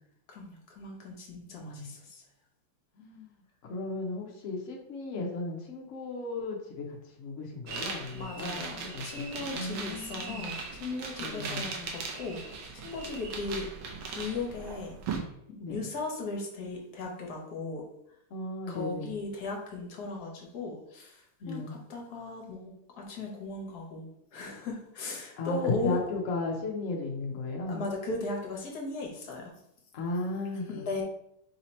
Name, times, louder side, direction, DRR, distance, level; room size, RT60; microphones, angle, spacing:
voice 1, 0.3-2.2 8.1-12.4 12.8-13.7 14.1-15.0 15.7-17.8 18.7-22.7 23.0-26.0 27.7-29.5 30.7-31.0, left 3 dB, 55° left, 0 dB, 1.3 m, -37 dB
voice 2, 1.5-2.0 3.0-3.3 3.6-8.6 8.9-9.2 9.5-10.4 11.2-11.7 15.6-15.8 18.3-19.1 21.4-21.8 25.4-27.8 29.9-31.0, left 3 dB, 70° left, 0 dB, 0.7 m, -35 dB
sound 1, 7.7-15.2, right 4 dB, 70° right, 1.5 m, -39 dB
4.1 x 2.8 x 4.2 m, 0.74 s
omnidirectional pair, 2.3 m